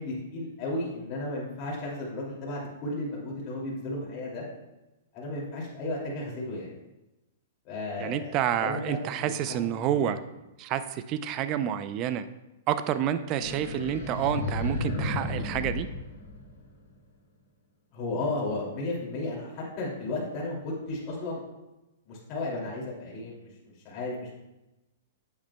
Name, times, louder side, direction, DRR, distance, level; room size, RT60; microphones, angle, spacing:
voice 1, 0.0-4.4 5.1-6.7 7.6-10.0 17.9-21.4 22.1-24.3, left 2 dB, 40° left, -5 dB, 2.5 m, -34 dB
voice 2, 8.0-10.2 10.6-12.3 12.7-15.9, right 10 dB, 35° right, 12 dB, 0.5 m, -29 dB
sound 1, 13.4-16.9, left 2 dB, 80° left, 1.8 m, -33 dB
8.5 x 8.0 x 2.3 m, 0.99 s
hypercardioid pair, 125°, 0 cm